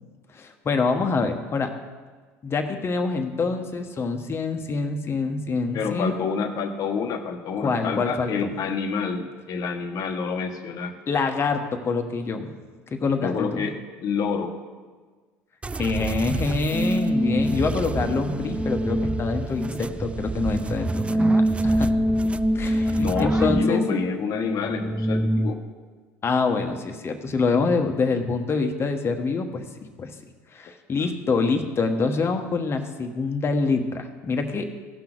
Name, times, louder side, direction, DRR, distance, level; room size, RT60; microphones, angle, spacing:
voice 1, 0.3-1.7 2.4-6.1 7.6-8.5 11.1-12.5 12.9-13.7 15.8-21.9 22.5-23.8 26.2-29.6 30.0-30.1 30.5-34.7, left 4 dB, 35° left, 5 dB, 1.3 m, -26 dB
voice 2, 5.7-10.9 13.2-13.7 14.0-14.5 23.0-25.6, left 5 dB, 50° left, 6 dB, 1.2 m, -28 dB
sound 1, 15.6-23.6, right 4 dB, 15° right, 0.3 m, -31 dB
sound 2, 16.7-25.5, equal, ahead, 0.7 m, -25 dB
16.0 x 5.9 x 4.0 m, 1.4 s
hypercardioid pair, 80°, 8 cm